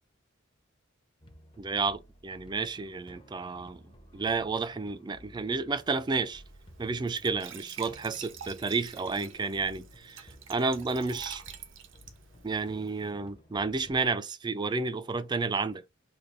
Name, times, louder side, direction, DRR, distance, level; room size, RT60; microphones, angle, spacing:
sound 1, 1.2-14.0, equal, 25° left, 0.6 m, -55 dB
voice 1, 1.6-3.8 4.1-6.4 6.8-11.4 12.4-15.9, right 4 dB, 20° right, 0.3 m, -31 dB
Glass / Trickle dribble / Fill (with liquid), 5.8-13.1, right 8 dB, 65° right, 0.6 m, -48 dB
3.3 x 2.3 x 3.8 m
head